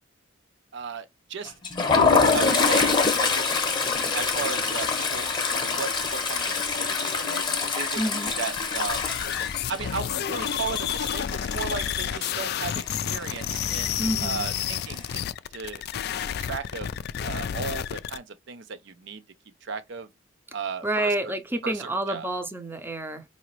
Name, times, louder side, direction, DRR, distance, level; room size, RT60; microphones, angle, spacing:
voice 1, 0.7-1.5 2.3-3.3 4.1-6.9 7.2-7.4 7.8-9.1 9.7-15.2 15.5-15.8 16.2-16.9 17.2-19.2 19.6-20.1 20.5-21.3 21.6-22.3, right 5 dB, 65° right, 0.6 m, -35 dB
Toilet flush, 1.5-12.2 12.5-12.7 13.0-13.2 14.2-14.7, left 4 dB, 25° left, 0.9 m, -25 dB
voice 2, 8.0-8.3 14.0-14.5 20.8-23.2, right 1 dB, 10° right, 0.6 m, -28 dB
sound 1, 8.3-18.2, left 9 dB, 55° left, 0.3 m, -30 dB
4.9 x 2.7 x 3.1 m
head